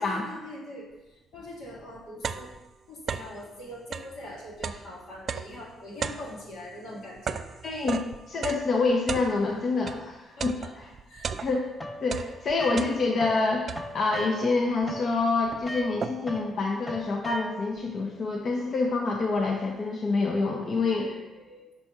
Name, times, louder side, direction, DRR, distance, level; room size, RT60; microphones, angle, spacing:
voice 1, 0.0-2.5 2.9-7.4 10.4-10.7 11.1-11.3 20.9-21.7, left 1 dB, 85° left, -4 dB, 1.9 m, -43 dB
sound 1, 1.3-1.4 1.8-3.4 3.8-10.1 10.4-11.8 12.0-13.3 13.7-14.2 14.8-14.9 15.2-16.5, right 6 dB, 55° right, 0.3 m, -36 dB
voice 2, 7.6-10.9 11.4-11.7 12.0-21.1, left 3 dB, 55° left, 1 dB, 0.7 m, -27 dB
sound 2, 11.8-13.4 13.7-17.8, equal, 20° left, 0.9 m, -39 dB
5.4 x 4.2 x 4.7 m, 1.1 s
cardioid pair, 90°, 0 cm